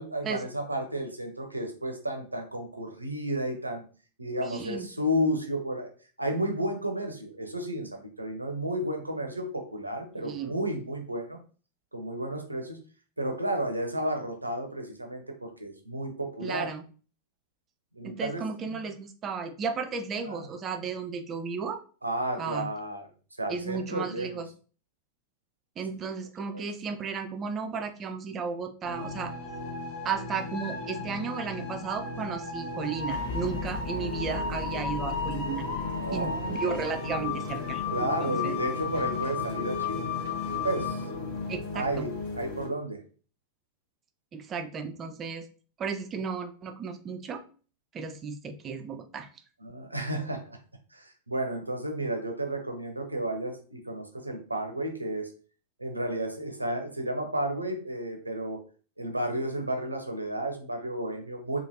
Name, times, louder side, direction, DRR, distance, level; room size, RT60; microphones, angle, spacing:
voice 1, 0.0-3.8 4.2-5.9 6.2-11.4 11.9-12.8 13.2-16.7 18.0-18.8 20.3-20.4 22.0-23.1 23.4-24.3 26.5-26.7 35.8-36.6 37.9-40.0 40.6-41.0 41.7-43.0 49.6-50.4 50.9-55.3 55.8-58.6 59.0-61.6, right 1 dB, 85° right, 3 dB, 0.6 m, -32 dB
voice 2, 4.4-4.9 10.2-10.5 16.4-16.8 18.0-21.8 22.4-22.7 23.5-24.5 25.8-29.3 30.0-35.7 36.1-38.6 41.5-42.1 44.3-45.5 45.8-47.4 47.9-49.3, right 5 dB, 25° right, 7 dB, 0.4 m, -34 dB
sound 1, 28.8-42.7, left 4 dB, 55° left, 1.4 m, -33 dB
3.1 x 2.4 x 2.6 m, 0.39 s
figure-of-eight pair, 90°, 0 cm